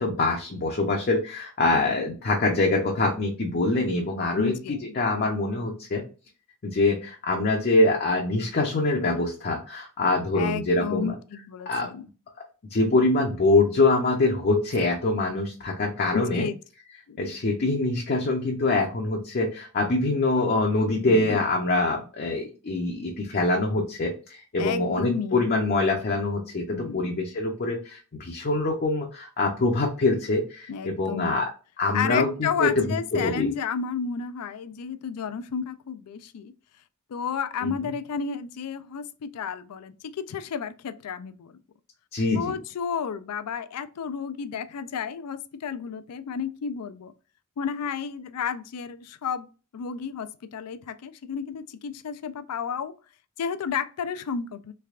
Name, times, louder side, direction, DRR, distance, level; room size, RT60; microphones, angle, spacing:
voice 1, 0.0-6.0 6.6-11.1 11.7-11.9 12.7-16.5 17.2-31.5 31.8-32.9 33.1-33.5 37.6-37.7 42.1-42.5, left 2 dB, 45° left, 0.6 m, -24 dB
voice 2, 4.4-5.0 10.3-12.1 16.1-16.6 17.1-17.2 21.1-21.4 24.6-25.6 26.7-27.1 30.7-31.4 31.9-36.5 37.1-41.6 42.4-47.1 47.6-49.5 49.7-52.9 53.4-54.7, left 6 dB, 90° left, 0.4 m, -32 dB
3.3 x 3.3 x 2.4 m
head